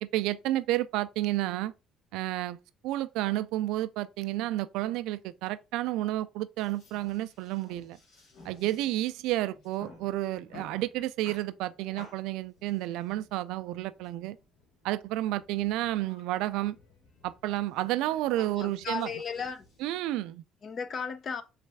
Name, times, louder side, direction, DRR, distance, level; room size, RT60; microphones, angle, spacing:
voice 1, 0.0-1.7 2.1-2.6 2.8-8.0 8.4-14.4 14.8-16.8 17.2-19.1 19.8-20.4, right 15 dB, 90° right, 0.3 m, -31 dB
sound 1, 6.6-20.0, left 3 dB, 65° left, 1.8 m, -56 dB
voice 2, 18.4-19.6 20.6-21.4, left 5 dB, 40° left, 0.6 m, -35 dB
4.1 x 3.2 x 3.4 m
cardioid pair, 110°, 0 cm